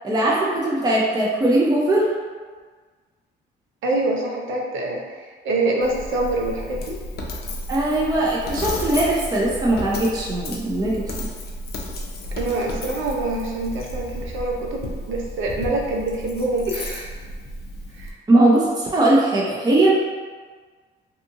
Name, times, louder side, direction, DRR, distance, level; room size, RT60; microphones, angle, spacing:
voice 1, 0.0-2.1 7.7-11.3 18.3-19.9, right 1 dB, 20° right, -4 dB, 0.5 m, -20 dB
voice 2, 3.8-7.0 12.4-17.1 17.9-18.1, right 2 dB, 80° right, -1 dB, 0.6 m, -25 dB
Coin (dropping), 5.8-18.1, left 1 dB, 55° left, 0.5 m, -33 dB
2.7 x 2.5 x 2.5 m, 1.5 s
cardioid pair, 90°, 20 cm